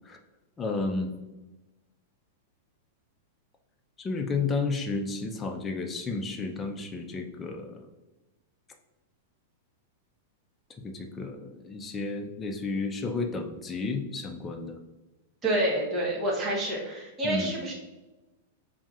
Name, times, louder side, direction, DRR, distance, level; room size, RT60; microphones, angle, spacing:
voice 1, 0.6-1.1 4.0-7.8 10.8-14.8 17.2-17.5, left 3 dB, 15° left, 3 dB, 0.4 m, -32 dB
voice 2, 15.4-17.7, right 1 dB, 20° right, -2 dB, 0.9 m, -28 dB
5.5 x 2.6 x 2.4 m, 1.1 s
supercardioid pair, 155°, 0 cm